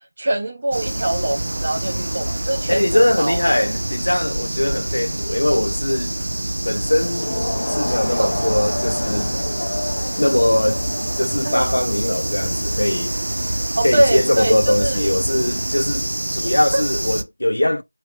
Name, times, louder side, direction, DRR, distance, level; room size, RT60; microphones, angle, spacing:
voice 1, 0.2-3.4 8.2-8.5 11.4-11.7 13.8-15.1 16.7-16.8, right 1 dB, 25° right, 0.8 m, -23 dB
sound 1, 0.7-17.2, right 1 dB, 55° right, 0.7 m, -26 dB
voice 2, 2.7-6.3 6.6-7.3 7.7-9.3 10.2-10.8 11.1-13.1 13.8-17.8, left 1 dB, 80° left, 0.9 m, -21 dB
Crowd, 6.8-11.9, left 1 dB, 35° left, 1.1 m, -28 dB
4.1 x 2.7 x 3.5 m
figure-of-eight pair, 175°, 0 cm